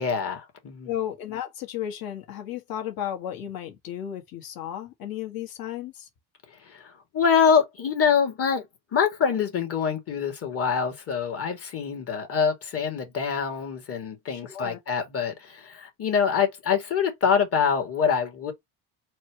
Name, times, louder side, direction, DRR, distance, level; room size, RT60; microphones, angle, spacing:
voice 1, 0.0-0.9 6.5-8.7 8.9-18.5, left 6 dB, 35° left, 1.5 m, -25 dB
voice 2, 0.8-6.1 14.3-14.8, left 11 dB, 60° left, 1.4 m, -34 dB
4.3 x 2.2 x 4.5 m
cardioid pair, 160°, 40 cm